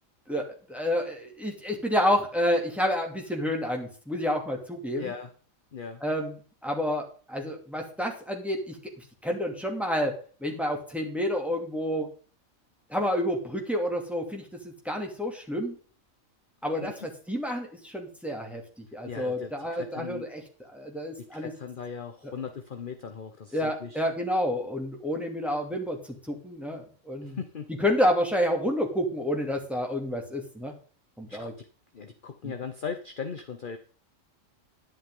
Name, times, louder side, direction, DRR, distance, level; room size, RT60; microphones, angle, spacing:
voice 1, 0.3-5.1 6.0-8.8 9.2-10.1 10.4-12.1 12.9-15.8 16.6-21.5 22.2-22.3 23.5-26.0 26.3-27.4 27.7-30.7 31.2-31.5 32.4-32.5, equal, ahead, 1 dB, 2.6 m, -29 dB
voice 2, 4.9-5.3 5.7-6.0 16.8-17.1 19.0-20.2 21.2-24.0 27.2-27.7 31.3-31.5 31.9-33.8, left 6 dB, 45° left, 7 dB, 1.0 m, -38 dB
10.5 x 10.5 x 3.8 m, 0.41 s
omnidirectional pair, 1.4 m